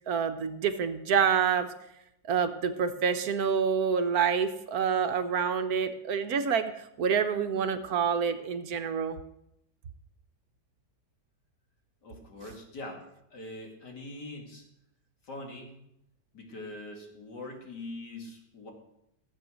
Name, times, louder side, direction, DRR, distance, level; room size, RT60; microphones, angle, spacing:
voice 1, 0.1-1.7 2.2-9.2, right 6 dB, 65° right, 9 dB, 1.3 m, -27 dB
voice 2, 12.0-13.0 13.3-14.6 15.2-15.7 16.3-18.7, left 2 dB, 80° left, 1 dB, 3.0 m, -42 dB
15.0 x 7.9 x 6.4 m, 0.80 s
omnidirectional pair, 1.8 m